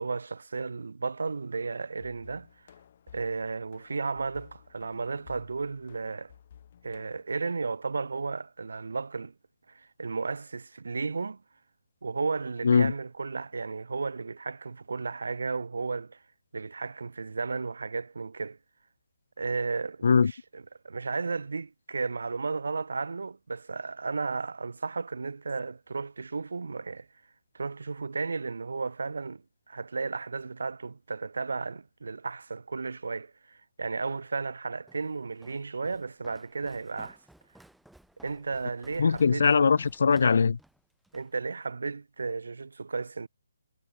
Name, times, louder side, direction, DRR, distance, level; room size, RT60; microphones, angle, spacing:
voice 1, 0.0-2.5 3.1-6.3 6.8-9.3 9.7-11.4 12.0-16.2 16.5-18.6 19.4-27.1 27.5-37.2 38.2-39.5 41.1-43.3, right 4 dB, 75° right, 1.2 m, -34 dB
sound 1, 2.0-7.2, left 9 dB, 25° left, 3.7 m, -55 dB
Walk footsteps, 34.9-41.3, right 1 dB, ahead, 5.3 m, -57 dB
voice 2, 39.0-40.6, left 5 dB, 50° left, 0.3 m, -21 dB
hypercardioid pair, 180°, 0 cm